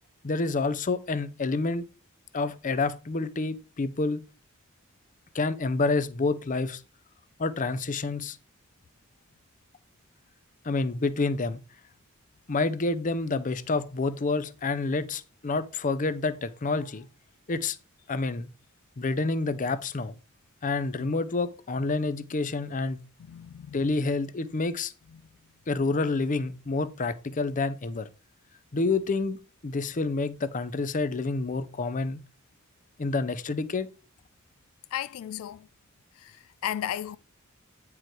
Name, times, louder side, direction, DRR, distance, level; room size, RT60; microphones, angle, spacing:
voice 1, 0.2-1.9 2.3-4.2 5.3-6.8 7.4-8.4 10.6-11.6 12.5-17.1 17.5-17.8 18.1-18.5 19.0-20.2 20.6-23.0 23.7-24.9 25.7-28.1 28.7-32.2 33.0-33.9, left 3 dB, 40° left, 0.6 m, -28 dB
voice 2, 23.2-24.0 25.1-25.3 34.9-35.7 36.1-37.2, left 10 dB, 85° left, 0.3 m, -35 dB
9.2 x 4.8 x 4.5 m
head